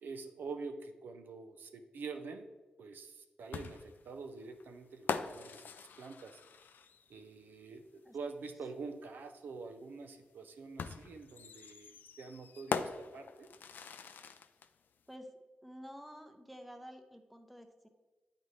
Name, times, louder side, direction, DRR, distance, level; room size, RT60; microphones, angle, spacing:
voice 1, 0.0-2.5 2.8-6.4 7.1-13.5, right 4 dB, 85° right, 6 dB, 0.5 m, -46 dB
sound 1, 3.5-7.2 8.7-8.8 10.8-14.7, left 6 dB, 80° left, 0.3 m, -41 dB
voice 2, 15.6-17.9, equal, ahead, 5 dB, 0.7 m, -50 dB
8.6 x 4.1 x 3.2 m, 1.2 s
cardioid pair, 80°, 3 cm